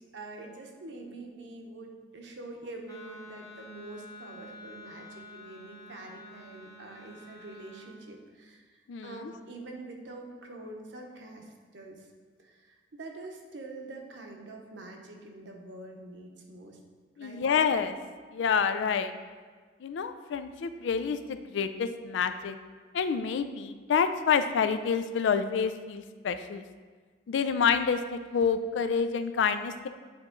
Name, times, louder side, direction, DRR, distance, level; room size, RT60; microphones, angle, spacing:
voice 1, 0.1-12.1 12.4-16.8 17.1-17.4, right 2 dB, 75° right, 2 dB, 0.8 m, -45 dB
Wind instrument woodwind instrument, 2.8-8.0, left 1 dB, 20° left, 0.7 m, -49 dB
voice 2, 8.9-9.3 17.2-18.0 18.3-19.1 19.8-22.6 22.9-26.6 27.3-29.9, left 6 dB, 75° left, 10 dB, 0.3 m, -28 dB
8.8 x 3.0 x 3.7 m, 1.5 s
head